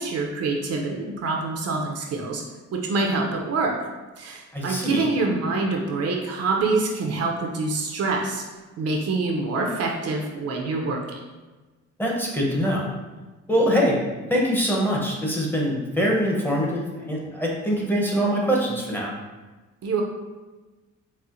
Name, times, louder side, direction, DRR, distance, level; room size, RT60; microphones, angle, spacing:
voice 1, 0.0-2.4 2.7-3.8 4.2-8.4 8.8-11.2 19.8-20.0, right 3 dB, 55° right, 0 dB, 0.5 m, -26 dB
voice 2, 4.5-5.1 12.0-12.9 13.5-14.0 14.3-19.1, equal, 5° left, -3 dB, 0.7 m, -23 dB
4.2 x 2.0 x 2.5 m, 1.2 s
cardioid pair, 90°, 30 cm